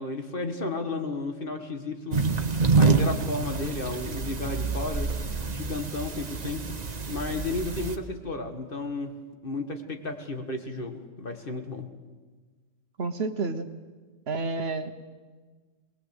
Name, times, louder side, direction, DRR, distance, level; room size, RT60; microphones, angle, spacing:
voice 1, 0.0-5.1 5.4-6.6 7.1-9.2 9.4-11.9, left 3 dB, 45° left, 6 dB, 1.7 m, -33 dB
sound 1, 2.1-8.0, right 4 dB, 35° right, 1.1 m, -27 dB
voice 2, 13.0-13.7 14.3-14.9, right 3 dB, 55° right, 9 dB, 1.2 m, -30 dB
21.0 x 20.5 x 8.0 m, 1.4 s
omnidirectional pair, 1.3 m